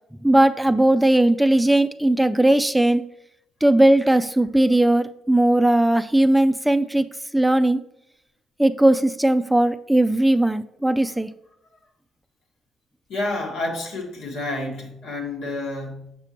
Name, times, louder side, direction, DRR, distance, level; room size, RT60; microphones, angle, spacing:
voice 1, 0.2-3.0 3.6-7.1 7.3-7.8 8.6-11.3, right 1 dB, 5° right, 10 dB, 0.3 m, -18 dB
voice 2, 13.1-16.2, left 2 dB, 80° left, -1 dB, 1.6 m, -29 dB
6.8 x 5.7 x 2.9 m, 0.80 s
cardioid pair, 80°, 0 cm